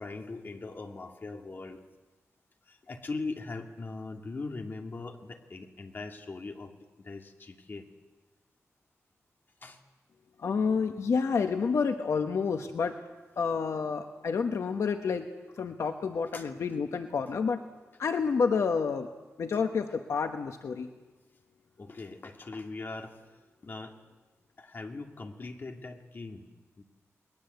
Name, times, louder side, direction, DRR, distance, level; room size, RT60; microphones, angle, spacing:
voice 1, 0.0-1.8 2.7-7.9 9.6-9.8 16.3-16.4 21.8-23.2 23.6-24.0 24.6-26.5 26.8-26.9, left 3 dB, 40° left, 4 dB, 2.4 m, -40 dB
voice 2, 10.4-12.9 13.4-15.3 15.6-17.6 18.0-19.1 19.4-20.9, left 5 dB, 75° left, 6 dB, 1.2 m, -29 dB
29.5 x 21.0 x 8.1 m, 1.2 s
wide cardioid pair, 130°, 5 cm